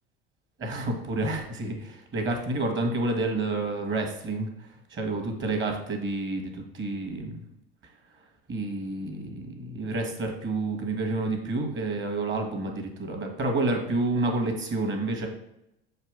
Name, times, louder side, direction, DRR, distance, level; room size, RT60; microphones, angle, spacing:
voice 1, 0.6-7.4 8.5-15.3, right 2 dB, 35° right, 4 dB, 1.5 m, -29 dB
6.6 x 2.9 x 4.9 m, 0.84 s
hypercardioid pair, 75°, 32 cm